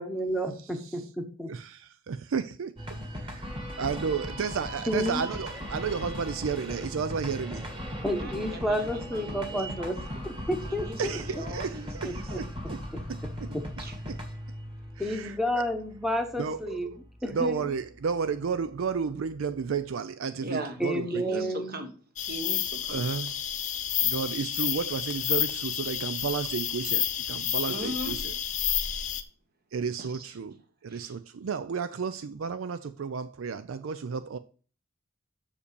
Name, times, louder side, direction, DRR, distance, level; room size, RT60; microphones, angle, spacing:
voice 1, 0.0-0.5 1.4-1.5 4.9-5.3 8.0-10.0 10.2-11.4 12.0-12.4 15.0-16.9 17.2-17.7 20.8-21.8, equal, ahead, 1.0 m, -30 dB
voice 2, 2.1-2.7 3.2-7.7 11.0-12.8 13.1-13.5 14.1-14.2 15.0-15.6 16.4-16.8 17.2-21.4 22.9-23.3 24.0-28.3 29.7-30.6 30.8-34.4, right 6 dB, 70° right, 0.4 m, -32 dB
sound 1, 2.8-19.9, equal, 25° right, 2.1 m, -39 dB
voice 3, 8.0-10.3 10.7-12.2 13.5-13.9 20.4-20.8 21.1-21.9 22.3-23.0 27.7-28.2 30.0-30.3 30.9-31.1, right 1 dB, 45° right, 1.4 m, -39 dB
sound 2, 22.2-29.2, left 10 dB, 35° left, 0.7 m, -30 dB
6.7 x 5.1 x 6.8 m
head